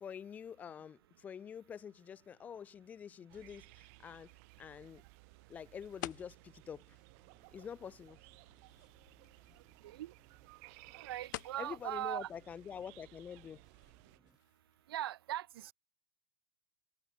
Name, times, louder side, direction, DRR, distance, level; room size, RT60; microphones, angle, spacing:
voice 1, 0.0-4.3 4.6-5.0 5.5-7.0 7.5-8.2 11.6-13.6, left 8 dB, 10° left, 0.6 m, -47 dB
sound 1, 1.9-15.1, left 18 dB, 50° left, 2.7 m, -55 dB
sound 2, 3.3-14.2, right 35 dB, 40° right, 7.5 m, -60 dB
sound 3, 6.6-14.4, right 3 dB, 5° right, 4.4 m, -72 dB
voice 2, 10.9-12.3 14.9-15.7, right 13 dB, 80° right, 0.6 m, -40 dB
supercardioid pair, 170°, 12 cm